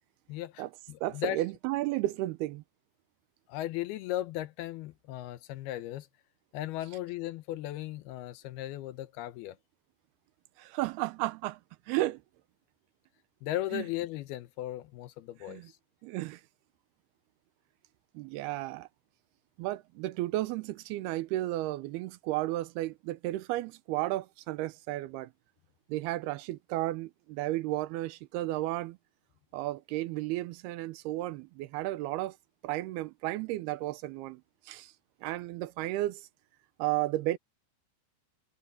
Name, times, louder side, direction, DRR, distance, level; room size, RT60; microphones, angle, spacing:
voice 1, 0.3-1.4 3.5-6.1 6.5-9.6 13.4-15.8, left 14 dB, 75° left, 2.6 m, -37 dB
voice 2, 1.0-2.6 10.6-11.6 11.9-12.2 13.7-13.8 15.5-15.7 16.0-16.4 18.1-18.9 19.6-25.3 25.9-29.0 29.5-32.4 32.6-34.4 34.7-34.9 35.2-36.2 36.8-37.4, right 16 dB, 75° right, 2.6 m, -33 dB
omnidirectional pair, 4.9 m